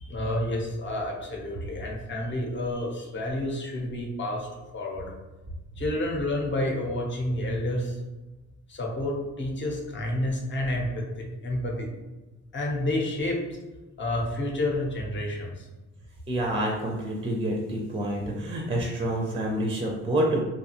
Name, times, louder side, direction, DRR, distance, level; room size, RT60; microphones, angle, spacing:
voice 1, 0.0-4.5 4.7-5.1 5.8-8.0 8.7-11.9 12.5-13.4 14.0-15.7, left 1 dB, 40° left, 0 dB, 0.8 m, -29 dB
voice 2, 16.3-20.4, right 1 dB, 20° right, 0 dB, 0.5 m, -27 dB
2.7 x 2.3 x 2.8 m, 1.1 s
cardioid pair, 90°, 30 cm